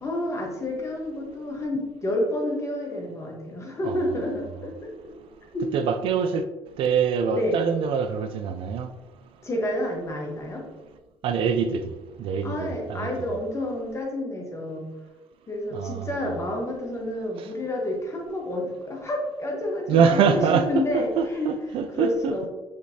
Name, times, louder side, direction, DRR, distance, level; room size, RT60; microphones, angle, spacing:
voice 1, 0.0-5.1 5.5-5.7 7.3-7.6 9.4-10.7 12.4-14.9 15.5-21.1 21.3-21.5 22.0-22.5, left 1 dB, 30° left, 1.2 m, -29 dB
voice 2, 3.9-4.2 5.7-6.4 6.8-8.9 11.2-11.9 12.2-13.1 15.7-16.2 19.9-22.5, right 6 dB, 70° right, 0.4 m, -24 dB
5.0 x 3.1 x 2.7 m
cardioid pair, 90°, 10 cm